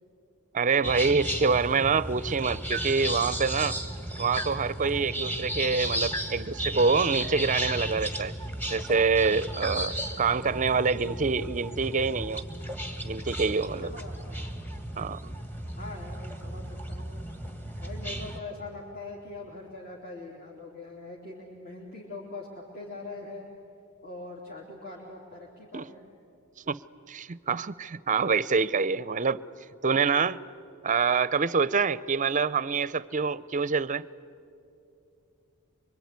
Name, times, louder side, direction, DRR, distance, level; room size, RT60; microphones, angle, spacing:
voice 1, 0.5-3.8 4.2-8.3 8.7-12.4 13.0-13.9 15.0-15.2 25.7-25.9 26.7-26.8 27.1-29.4 29.8-30.4 30.8-34.0, right 5 dB, 35° right, 18 dB, 0.5 m, -26 dB
sound 1, 0.8-18.4, right 1 dB, 10° left, 1.7 m, -34 dB
voice 2, 13.8-14.5 15.1-15.2 15.7-17.2 17.8-23.5 24.0-26.0, left 2 dB, 45° left, -5 dB, 3.4 m, -42 dB
25.0 x 24.5 x 9.5 m, 2.7 s
head